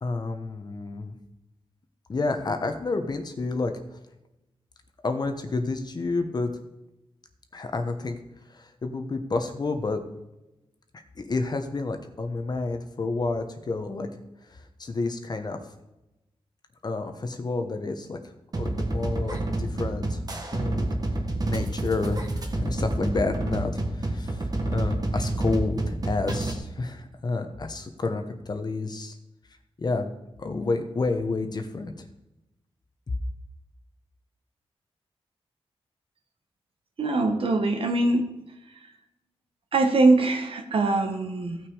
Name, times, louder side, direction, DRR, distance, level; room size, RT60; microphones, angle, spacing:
voice 1, 0.0-1.1 2.1-4.0 5.0-6.5 7.5-8.2 8.4-10.0 11.1-14.1 14.4-15.6 16.8-20.2 20.5-20.9 21.5-29.2 29.8-30.1 30.4-31.9 33.1-33.2, left 3 dB, 40° left, 7 dB, 1.1 m, -30 dB
sound 1, 18.5-26.5, right 1 dB, 40° right, 1.6 m, -28 dB
voice 2, 37.0-38.2 39.7-41.6, right 2 dB, 60° right, 5 dB, 1.5 m, -22 dB
16.0 x 6.1 x 4.9 m, 0.93 s
wide cardioid pair, 125°, 10 cm